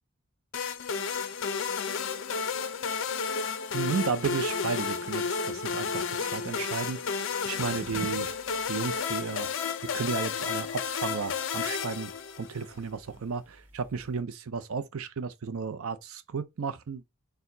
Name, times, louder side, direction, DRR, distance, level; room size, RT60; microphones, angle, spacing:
sound 1, 0.5-12.7, left 6 dB, 60° left, 0.5 m, -32 dB
voice 1, 3.7-8.4 8.7-9.5 9.9-12.1 12.4-17.0, right 5 dB, 75° right, 0.5 m, -33 dB
sound 2, 7.6-9.3 9.8-14.2, right 2 dB, 10° right, 0.5 m, -50 dB
4.4 x 2.1 x 3.8 m
head